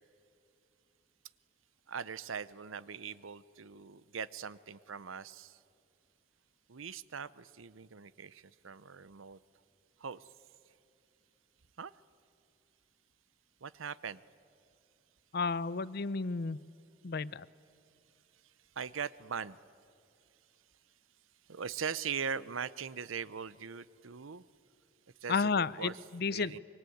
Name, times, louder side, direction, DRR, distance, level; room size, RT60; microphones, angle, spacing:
voice 1, 1.9-5.6 6.7-9.4 10.0-10.3 11.8-11.9 13.6-14.2 18.8-19.6 21.5-24.4 25.2-26.6, right 6 dB, 90° right, 18 dB, 0.7 m, -41 dB
voice 2, 15.3-16.6 17.0-17.5 25.3-26.6, left 4 dB, 50° left, 18 dB, 0.6 m, -32 dB
25.0 x 23.5 x 9.3 m, 2.5 s
head